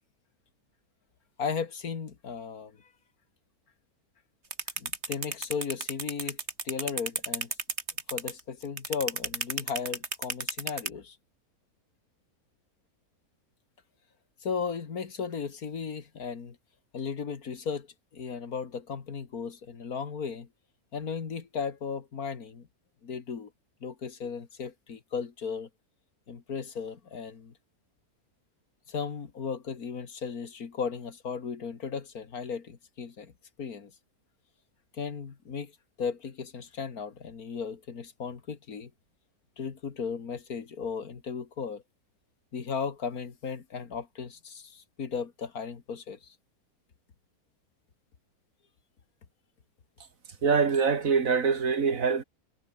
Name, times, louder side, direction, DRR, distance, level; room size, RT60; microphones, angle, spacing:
voice 1, 1.4-2.9 4.8-6.4 6.6-7.5 8.1-11.2 14.4-16.6 16.9-17.9 18.1-20.5 20.9-22.7 23.0-23.5 23.8-25.7 26.3-27.5 28.9-33.3 33.6-33.9 34.9-35.7 36.0-38.9 39.6-41.8 42.5-46.3, left 6 dB, 75° left, 2.3 m, -36 dB
sound 1, 4.5-10.9, right 3 dB, 45° right, 3.0 m, -32 dB
voice 2, 50.4-52.2, right 5 dB, 65° right, 2.2 m, -24 dB
omnidirectional pair, 1.6 m